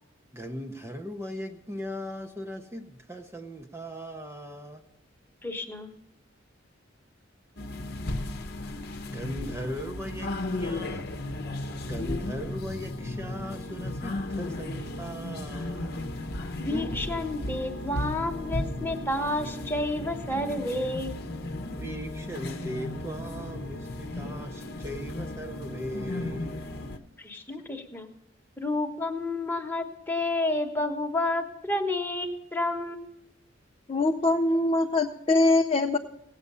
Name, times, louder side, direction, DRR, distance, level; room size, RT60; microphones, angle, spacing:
voice 1, 0.3-4.8 9.1-11.1 11.8-16.0 21.7-26.8 27.5-27.6, equal, 15° right, 3 dB, 0.7 m, -38 dB
voice 2, 5.4-5.9 16.6-21.1 27.2-28.1 28.6-33.3, left 1 dB, 10° left, 3 dB, 1.2 m, -30 dB
sound 1, 7.6-27.0, left 1 dB, 55° left, 0.9 m, -35 dB
voice 3, 33.9-36.0, left 2 dB, 30° left, 2 dB, 0.5 m, -23 dB
17.0 x 8.2 x 5.5 m, 0.80 s
head